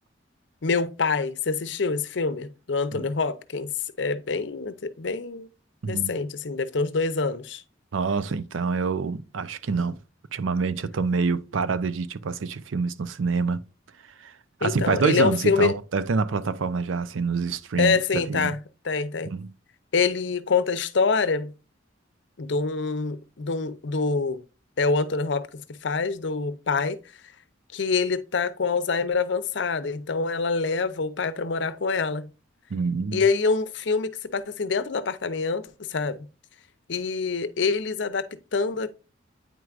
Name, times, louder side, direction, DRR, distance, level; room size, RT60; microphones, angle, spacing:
voice 1, 0.6-3.7 4.0-5.5 5.9-7.6 14.6-15.7 17.7-18.6 18.8-19.3 19.9-21.5 22.4-24.4 24.8-27.0 27.7-32.3 33.1-36.2 36.9-38.9, left 4 dB, 65° left, 0.6 m, -26 dB
voice 2, 7.9-10.0 10.3-13.6 14.2-14.3 14.6-18.5 19.3-19.5 32.7-33.2, right 4 dB, 80° right, 0.5 m, -26 dB
9.1 x 4.6 x 2.4 m
head